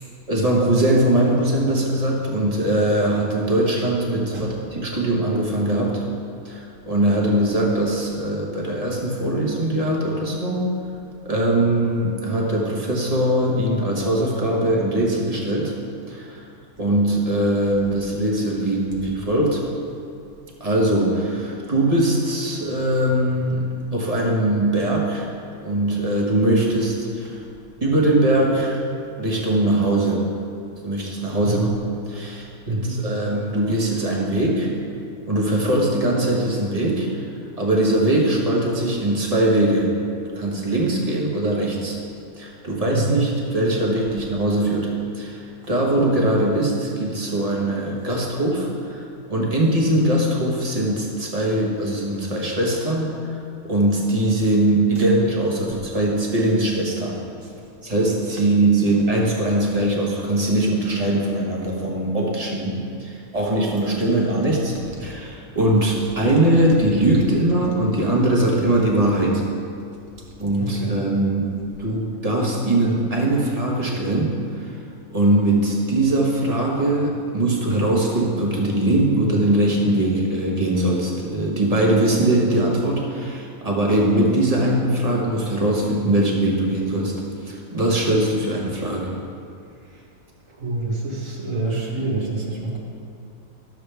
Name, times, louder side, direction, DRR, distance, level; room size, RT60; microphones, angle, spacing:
voice 1, 0.3-6.0 6.4-10.7 11.2-15.7 16.1-16.5 16.8-19.6 20.6-25.3 25.6-27.4 27.8-28.8 29.2-30.3 30.8-31.7 32.0-34.7 35.3-37.3 37.6-40.0 40.3-42.0 42.4-57.2 57.8-64.7 65.0-69.4 70.4-74.7 75.1-87.2 87.4-89.1, right 1 dB, 25° right, -3 dB, 1.4 m, -21 dB
voice 2, 32.7-33.0 42.9-43.2 65.0-65.1 70.6-71.0 90.5-92.8, right 2 dB, 60° right, -2 dB, 1.6 m, -26 dB
12.0 x 7.0 x 3.4 m, 2.4 s
omnidirectional pair, 1.6 m